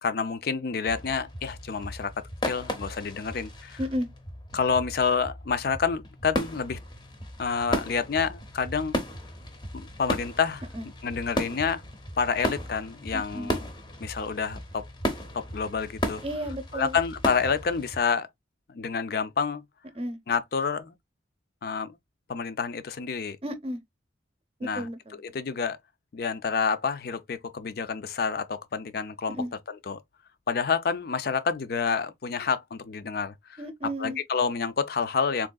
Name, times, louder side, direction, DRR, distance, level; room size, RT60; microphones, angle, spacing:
voice 1, 0.0-3.8 4.5-6.8 7.4-9.0 9.7-10.6 11.0-11.8 12.2-13.6 14.0-14.9 15.3-16.2 16.7-18.3 18.7-19.6 20.3-20.9 21.6-21.9 22.3-23.4 24.6-24.9 25.1-25.8 26.1-29.4 29.7-30.0 30.5-33.6 34.0-35.5, left 5 dB, 55° left, 0.4 m, -28 dB
sound 1, 0.9-18.0, left 1 dB, 25° left, 0.7 m, -35 dB
voice 2, 13.1-13.6 16.2-17.0 19.9-20.2 23.4-23.8 24.6-25.2 29.3-29.5 33.6-34.2, equal, 30° right, 0.6 m, -33 dB
3.6 x 3.1 x 2.2 m
head